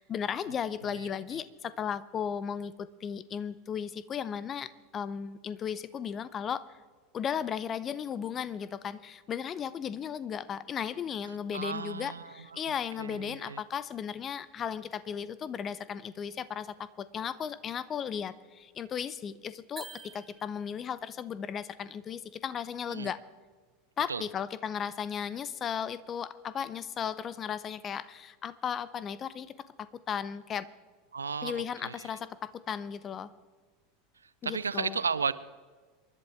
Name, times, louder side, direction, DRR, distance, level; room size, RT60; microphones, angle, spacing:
voice 1, 0.0-6.7 7.1-23.2 24.0-30.7 31.4-33.3 34.4-35.0, left 8 dB, 30° left, 17 dB, 0.7 m, -36 dB
voice 2, 11.5-12.6 13.0-13.6 22.9-23.1 24.1-24.2 31.1-32.1 34.4-35.3, right 5 dB, 80° right, 17 dB, 0.5 m, -34 dB
sound 1, 19.7-20.9, right 4 dB, 15° right, 1.2 m, -47 dB
27.5 x 11.5 x 3.5 m, 1.4 s
figure-of-eight pair, 80°, 0 cm